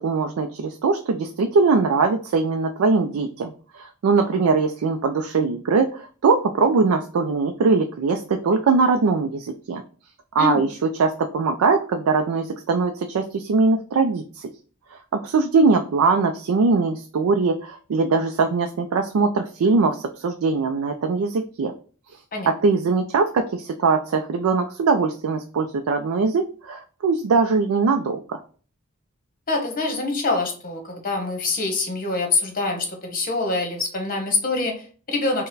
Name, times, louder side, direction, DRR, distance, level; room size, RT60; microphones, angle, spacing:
voice 1, 0.0-9.8 10.3-14.5 15.2-21.7 22.5-28.4, right 4 dB, 85° right, 5 dB, 0.4 m, -21 dB
voice 2, 29.5-35.5, left 3 dB, 40° left, 3 dB, 0.9 m, -25 dB
3.9 x 2.1 x 3.9 m, 0.41 s
head